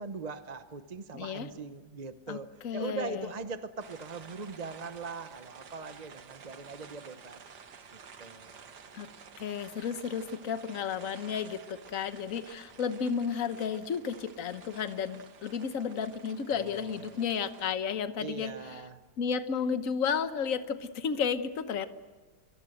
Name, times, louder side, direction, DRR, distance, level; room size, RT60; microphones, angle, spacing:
voice 1, 0.0-7.4 7.9-8.7 16.5-17.2 18.2-19.0, right 4 dB, 35° right, 10 dB, 0.7 m, -41 dB
voice 2, 1.1-1.5 2.3-3.3 8.9-9.1 9.4-18.8 19.2-21.9, left 6 dB, 55° left, 11 dB, 1.4 m, -33 dB
sound 1, 3.8-17.7, right 6 dB, 80° right, 2.0 m, -52 dB
24.5 x 24.0 x 7.9 m, 1.3 s
omnidirectional pair, 1.8 m